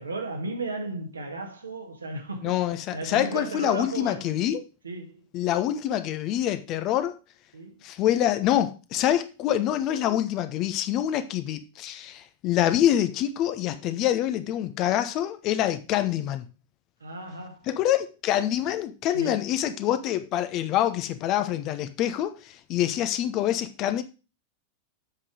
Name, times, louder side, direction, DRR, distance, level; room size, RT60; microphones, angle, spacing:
voice 1, 0.0-2.6 2.9-4.3 4.8-5.2 7.5-7.8 17.0-17.7 19.1-19.5, right 2 dB, 75° right, 1.9 m, -35 dB
voice 2, 2.4-4.6 5.3-7.2 7.8-16.4 17.7-24.0, left 11 dB, 40° left, 1.0 m, -26 dB
7.8 x 5.8 x 4.8 m
figure-of-eight pair, 90°, 0 cm